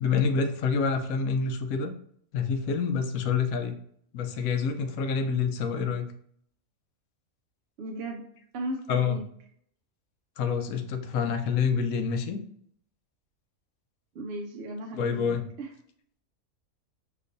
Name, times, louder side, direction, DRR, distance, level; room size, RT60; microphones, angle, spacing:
voice 1, 0.0-1.9 2.3-3.8 4.1-6.1 8.9-9.2 10.4-12.4 14.9-15.4, left 5 dB, 80° left, 7 dB, 1.0 m, -27 dB
voice 2, 7.8-8.2 8.5-9.2 14.1-15.7, right 1 dB, 60° right, 2 dB, 0.7 m, -36 dB
5.8 x 3.2 x 2.6 m, 0.65 s
omnidirectional pair, 1.5 m